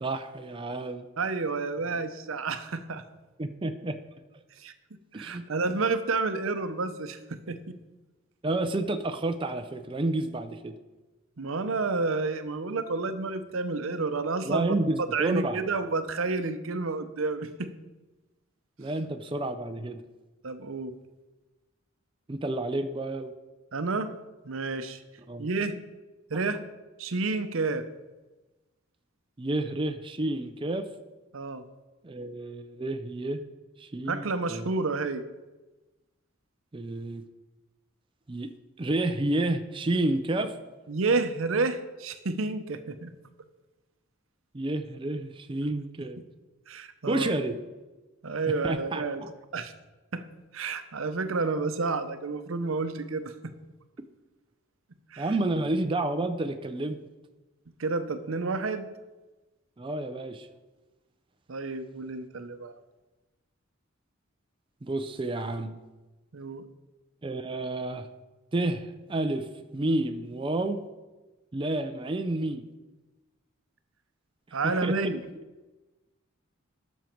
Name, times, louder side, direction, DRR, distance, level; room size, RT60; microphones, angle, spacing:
voice 1, 0.0-1.1 3.4-4.0 5.1-5.4 8.4-10.8 14.4-15.6 18.8-20.0 22.3-23.3 25.3-25.5 29.4-30.9 32.0-33.4 33.8-34.7 36.7-37.2 38.3-38.5 38.8-40.6 44.5-46.2 47.1-47.6 48.6-49.3 55.2-57.0 59.8-60.5 64.8-65.8 67.2-68.1 68.5-70.8 71.5-72.6 74.8-74.9, right 2 dB, 25° right, 8 dB, 0.5 m, -30 dB
voice 2, 1.2-3.0 4.6-4.7 5.1-7.8 11.4-17.7 20.4-20.9 23.7-24.1 24.4-25.0 25.4-25.7 26.3-26.6 27.0-27.9 31.3-31.6 34.1-35.2 40.9-43.1 46.7-47.3 48.2-49.2 49.5-49.7 50.1-50.2 50.5-53.3 55.1-55.3 57.8-58.9 61.5-62.8 66.3-66.6 74.5-75.2, right 3 dB, 80° right, 10 dB, 0.7 m, -30 dB
12.0 x 6.4 x 4.5 m, 1.1 s
head